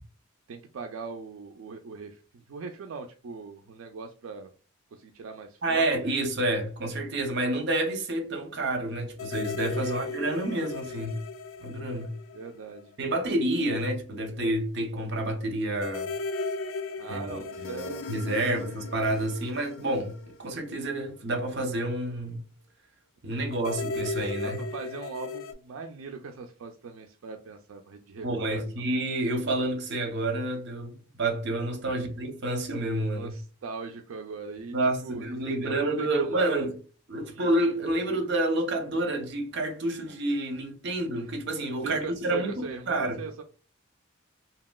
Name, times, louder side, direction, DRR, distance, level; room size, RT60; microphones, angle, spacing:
voice 1, 0.5-4.5 4.9-6.1 9.7-10.1 12.3-12.9 17.0-18.0 18.4-18.7 24.4-28.6 31.9-32.0 33.1-34.8 35.0-35.3 35.6-36.7 37.3-37.5 41.8-43.4, right 4 dB, 80° right, 0.4 m, -40 dB
voice 2, 5.6-11.2 11.6-12.1 13.0-16.1 17.1-22.4 23.2-24.6 28.2-33.3 34.7-36.8 37.1-43.2, right 1 dB, 60° right, 0.7 m, -29 dB
sound 1, 9.2-12.9 13.2-13.3 15.8-21.2 23.5-25.5, left 3 dB, 85° left, 0.4 m, -36 dB
2.9 x 2.8 x 2.2 m
head